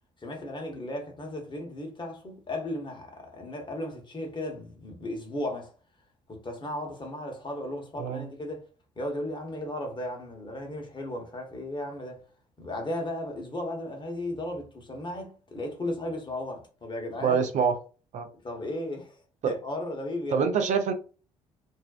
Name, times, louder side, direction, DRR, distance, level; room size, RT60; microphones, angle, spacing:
voice 1, 0.2-5.7 6.3-8.7 9.0-12.2 12.6-17.4 18.4-19.2 19.4-20.4, left 1 dB, 30° left, 1.1 m, -35 dB
voice 2, 17.2-17.7 18.1-18.3 19.4-19.5 20.3-20.9, right 6 dB, 55° right, 0.5 m, -25 dB
2.5 x 2.0 x 2.4 m
hypercardioid pair, 55°, 15 cm